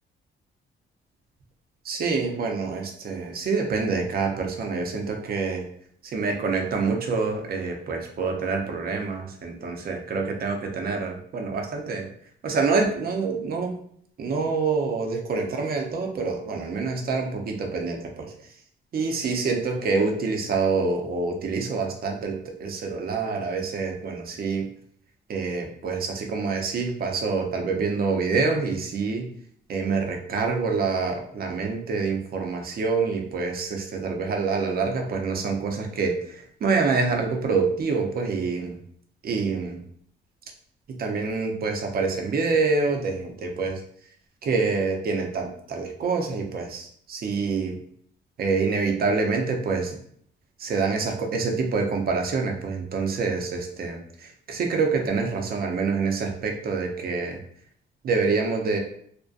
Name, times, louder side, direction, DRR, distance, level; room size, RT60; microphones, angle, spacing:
voice 1, 1.8-5.7 6.0-12.1 12.4-13.7 14.2-18.5 18.9-24.7 25.3-29.3 29.7-38.8 39.2-39.8 40.9-43.8 44.4-47.8 48.4-50.0 50.6-57.4 58.0-58.8, right 4 dB, 50° right, 2 dB, 0.6 m, -26 dB
2.5 x 2.1 x 2.4 m, 0.63 s
cardioid pair, 90°, 20 cm